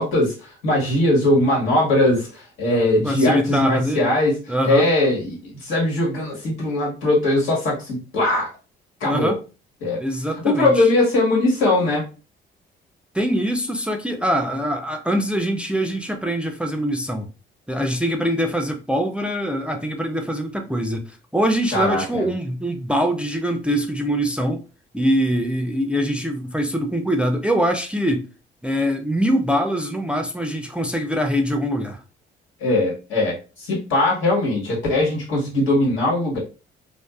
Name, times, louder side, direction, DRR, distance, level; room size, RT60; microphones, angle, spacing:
voice 1, 0.0-8.5 9.0-9.3 9.8-10.0 10.4-12.0 21.7-22.3 32.6-36.4, left 1 dB, 80° left, 1.4 m, -20 dB
voice 2, 3.0-4.1 4.5-4.8 9.0-9.4 10.0-10.9 13.1-17.3 17.7-24.6 24.9-28.3 28.6-32.0, equal, 5° right, 0.3 m, -23 dB
2.5 x 2.4 x 2.3 m
cardioid pair, 90°, 20 cm